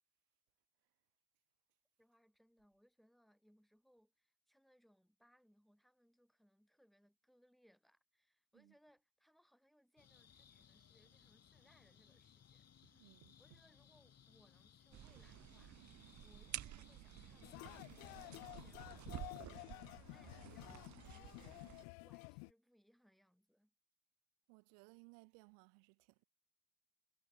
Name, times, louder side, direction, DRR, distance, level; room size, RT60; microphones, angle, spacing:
voice 1, 2.0-23.7, equal, ahead, 6.5 m, -73 dB
sound 1, 10.0-19.4, left 8 dB, 35° left, 7.3 m, -66 dB
voice 2, 12.9-13.4 24.5-26.0, right 40 dB or more, 75° right, 1.9 m, -62 dB
sound 2, 14.9-21.8, right 13 dB, 45° right, 1.2 m, -52 dB
sound 3, 17.4-22.5, left 40 dB or more, 75° left, 0.6 m, -52 dB
supercardioid pair, 95°, 41 cm